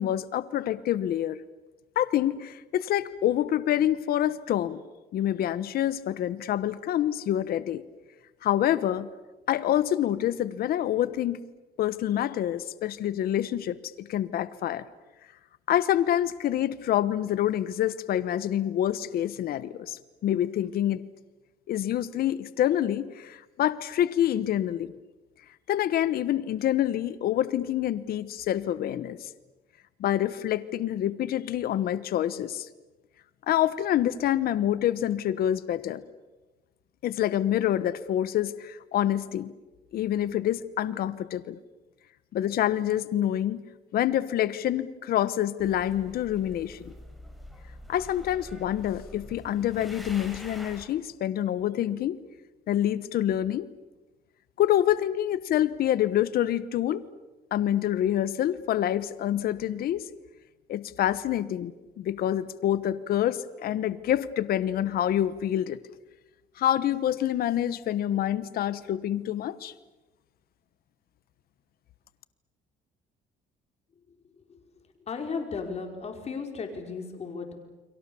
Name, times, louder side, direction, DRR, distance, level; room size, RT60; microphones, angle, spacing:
voice 1, 0.0-1.4 2.0-4.8 5.1-7.8 8.4-9.1 9.5-11.4 11.8-14.9 15.7-21.1 21.7-24.9 25.7-29.3 30.0-32.7 33.5-36.0 37.0-39.5 39.9-41.6 42.3-43.6 43.9-46.9 47.9-52.2 52.7-53.7 54.6-57.1 57.5-60.1 60.7-61.7 62.0-65.8 66.6-69.7, left 11 dB, 65° left, 15 dB, 1.1 m, -27 dB
sound 1, 45.6-50.9, left 1 dB, ahead, 4.9 m, -45 dB
voice 2, 75.1-77.5, left 5 dB, 40° left, 4 dB, 4.9 m, -35 dB
30.0 x 23.0 x 7.1 m, 1.1 s
cardioid pair, 110°, 17 cm